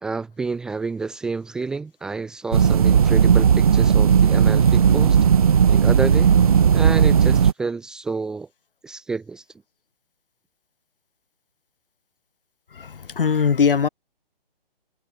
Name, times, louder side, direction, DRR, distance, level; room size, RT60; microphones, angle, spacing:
voice 1, 0.0-5.2 5.7-6.3 6.7-8.5 8.8-9.4, right 4 dB, ahead, 1.0 m, -29 dB
sound 1, 2.5-7.5, right 7 dB, 40° right, 0.8 m, -16 dB
voice 2, 12.8-13.9, left 6 dB, 65° left, 2.6 m, -20 dB
hypercardioid pair, 170°, 30 cm